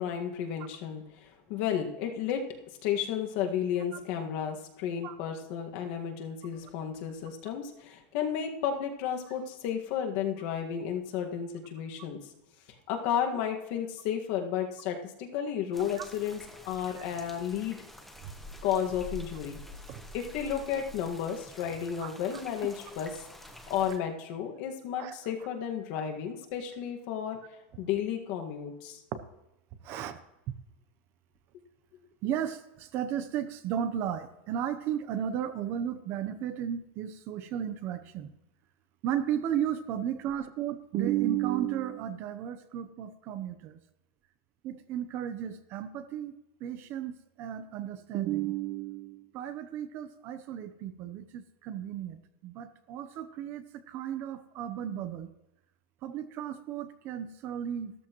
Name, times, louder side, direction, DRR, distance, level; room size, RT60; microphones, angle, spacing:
voice 1, 0.0-2.4 2.8-12.2 12.7-17.8 18.6-19.6 20.1-23.3 23.7-27.4 27.8-29.0, left 8 dB, 50° left, 3 dB, 1.7 m, -33 dB
sound 1, 15.7-24.0, left 1 dB, ahead, 1.0 m, -47 dB
voice 2, 29.8-30.2 32.2-38.3 39.0-43.8 44.6-46.3 46.6-55.3 56.0-57.9, right 10 dB, 35° right, 11 dB, 0.8 m, -34 dB
14.5 x 13.5 x 3.0 m, 0.91 s
supercardioid pair, 165°, 6 cm